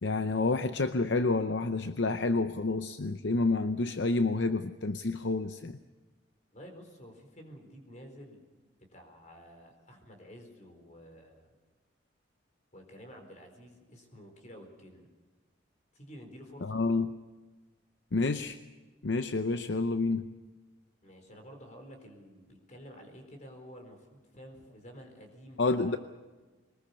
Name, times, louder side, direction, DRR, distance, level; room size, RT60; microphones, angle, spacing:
voice 1, 0.0-5.8 16.6-17.1 18.1-18.6 19.0-20.3 25.6-26.0, left 3 dB, 65° left, 9 dB, 0.7 m, -29 dB
voice 2, 6.5-8.4 8.9-11.5 12.7-15.1 15.9-16.8 21.0-26.0, equal, 40° left, 5 dB, 4.3 m, -50 dB
22.5 x 20.5 x 7.0 m, 1.3 s
head